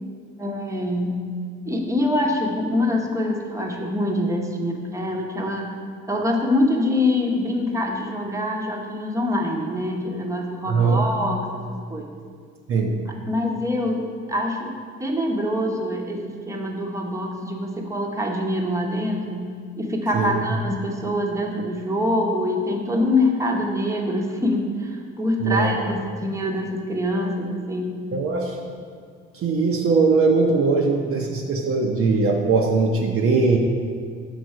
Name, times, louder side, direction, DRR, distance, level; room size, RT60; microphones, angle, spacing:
voice 1, 0.4-1.3 1.7-5.7 6.1-11.6 11.9-12.1 13.3-14.7 15.0-28.1, left 1 dB, 10° right, 1 dB, 0.8 m, -25 dB
voice 2, 10.7-11.0 12.7-13.0 20.1-20.3 25.4-25.9 28.1-28.6 29.3-33.6, right 4 dB, 40° right, 0 dB, 0.6 m, -20 dB
6.2 x 3.9 x 4.6 m, 2.1 s
figure-of-eight pair, 50°, 34 cm